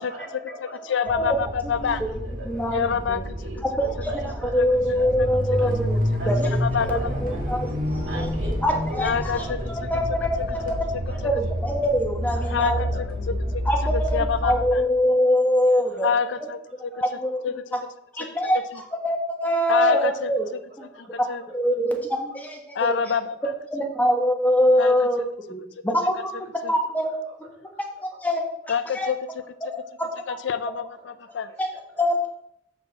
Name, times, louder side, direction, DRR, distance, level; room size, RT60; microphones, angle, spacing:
voice 1, 0.0-0.8 2.2-2.6 3.4-5.7 6.2-7.6 8.0-9.7 10.0-10.2 10.5-10.6 11.1-11.4 12.3-13.3 15.6-16.2 20.1-20.5 31.2-31.8, equal, 70° right, -1 dB, 2.1 m, -40 dB
voice 2, 0.6-2.0 2.7-3.3 4.6-4.7 5.2-5.3 5.6-5.7 6.4-7.0 9.0-9.6 12.5-12.9 13.3-13.6 13.9-14.8 16.0-16.9 17.4-17.6 19.7-20.3 21.0-21.4 22.7-23.5 24.8-24.9 26.6-26.7 28.7-29.2 30.3-31.5, left 6 dB, 70° left, 13 dB, 0.4 m, -26 dB
sound 1, 1.1-14.7, equal, 50° right, 1.4 m, -29 dB
voice 3, 1.8-2.1 2.4-3.2 3.8-4.1 4.5-6.5 6.9-8.3 8.6-9.3 9.7-10.6 11.2-12.8 13.2-13.4 13.7-14.1 14.4-16.1 17.0-17.4 18.2-18.6 19.0-20.5 21.5-23.0 23.7-25.2 25.5-26.1 26.7-27.1 28.2-28.4 28.9-29.1 32.0-32.3, equal, 10° left, 1 dB, 1.1 m, -23 dB
7.1 x 5.5 x 4.0 m, 0.73 s
head